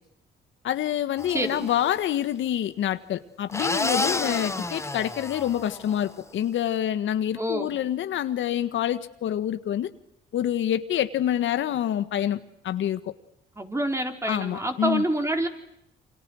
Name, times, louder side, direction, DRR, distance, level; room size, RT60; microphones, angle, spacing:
voice 1, 0.6-9.9 10.3-12.4 12.6-13.0 14.3-15.0, left 11 dB, 75° left, 11 dB, 1.6 m, -27 dB
sound 1, 1.2-1.9 3.5-6.1, left 2 dB, 15° left, 1.2 m, -30 dB
voice 2, 1.3-1.7 7.4-7.8 13.6-15.5, right 1 dB, 15° right, 5 dB, 4.4 m, -27 dB
28.5 x 26.5 x 6.4 m, 0.79 s
cardioid pair, 90°, 20 cm